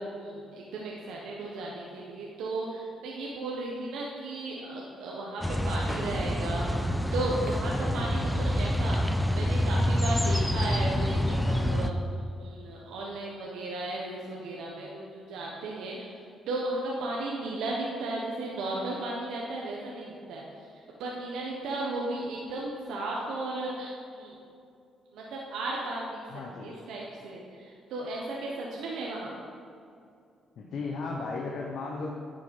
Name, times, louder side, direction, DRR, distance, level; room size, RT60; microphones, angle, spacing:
voice 1, 0.2-12.0 12.4-16.0 16.5-20.7 21.0-24.3 25.1-26.2 26.6-29.4, right 2 dB, 80° right, -3 dB, 1.2 m, -35 dB
sound 1, 5.4-11.9, left 1 dB, 5° left, 0.6 m, -27 dB
voice 2, 26.3-26.7 30.6-32.1, left 3 dB, 65° left, -1 dB, 1.0 m, -35 dB
9.5 x 6.7 x 5.4 m, 2.4 s
cardioid pair, 75°, 0 cm